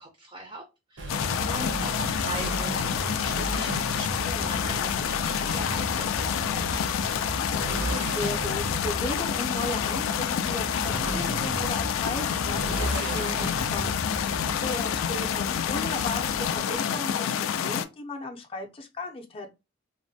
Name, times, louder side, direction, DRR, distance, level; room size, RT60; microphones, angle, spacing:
voice 1, 0.0-7.1, right 2 dB, 25° right, 0.4 m, -41 dB
Motorcycle, 1.0-16.8, right 1 dB, 65° right, 0.6 m, -35 dB
sound 1, 1.1-17.8, left 8 dB, 80° left, 0.3 m, -28 dB
voice 2, 8.1-14.1 14.3-19.5, left 2 dB, 25° left, 0.5 m, -36 dB
3.1 x 2.1 x 2.7 m
head